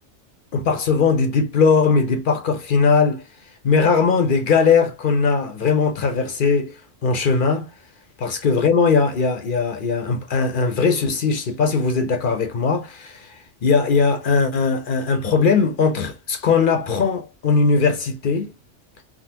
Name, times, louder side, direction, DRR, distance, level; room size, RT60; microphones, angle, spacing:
voice 1, 0.5-3.2 3.6-6.8 7.0-7.7 8.2-18.5, left 5 dB, 55° left, 0.7 m, -19 dB
3.5 x 2.1 x 2.8 m
omnidirectional pair, 1.2 m